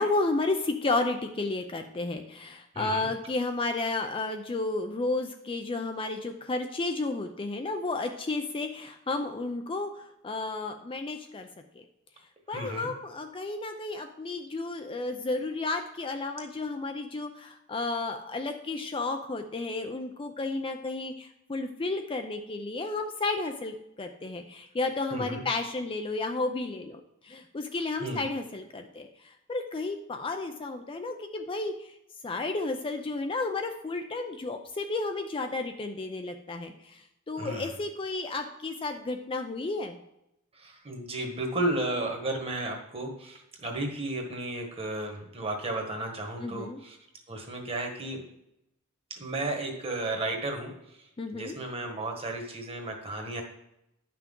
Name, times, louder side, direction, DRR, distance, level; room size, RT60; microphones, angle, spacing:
voice 1, 0.0-9.9 10.2-11.5 12.5-29.1 29.5-31.9 32.2-37.0 37.3-40.0 46.4-46.8 51.2-51.5, left 3 dB, 25° left, 5 dB, 0.4 m, -32 dB
voice 2, 2.7-3.1 12.5-12.9 25.1-25.4 27.9-28.2 37.4-37.7 40.5-47.0 47.3-48.2 49.1-50.7 51.0-51.1 51.3-53.4, right 2 dB, 25° right, 2 dB, 1.4 m, -33 dB
10.5 x 5.9 x 3.7 m, 0.82 s
head